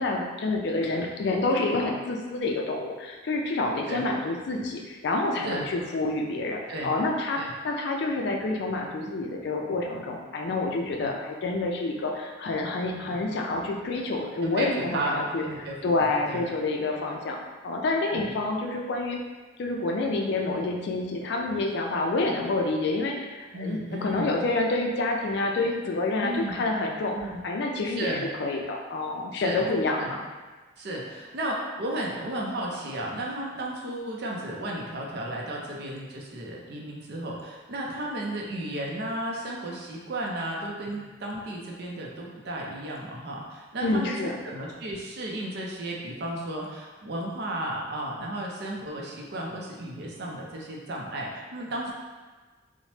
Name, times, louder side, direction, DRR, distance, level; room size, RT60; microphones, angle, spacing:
voice 1, 0.0-17.4 17.6-19.2 19.6-27.2 27.4-30.2 43.8-44.4, left 2 dB, 65° left, 1 dB, 0.4 m, -28 dB
voice 2, 14.4-15.7 16.3-16.4 18.1-18.3 23.5-24.4 26.2-26.6 27.1-27.4 27.9-28.2 29.3-29.7 30.0-30.1 30.8-51.9, right 1 dB, 60° right, -2 dB, 0.5 m, -34 dB
3.1 x 2.0 x 2.8 m, 1.3 s
head